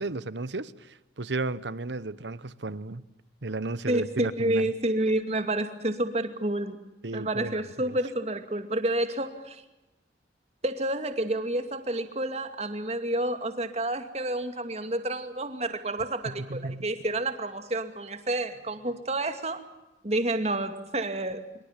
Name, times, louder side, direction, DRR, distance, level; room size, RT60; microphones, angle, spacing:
voice 1, 0.0-3.0 3.4-4.7 7.0-8.0 16.2-16.9, right 3 dB, 85° right, 17 dB, 1.2 m, -34 dB
voice 2, 3.9-6.8 7.1-9.6 10.6-19.6 20.0-21.4, right 1 dB, 35° right, 8 dB, 2.5 m, -29 dB
26.0 x 24.0 x 7.6 m, 0.97 s
head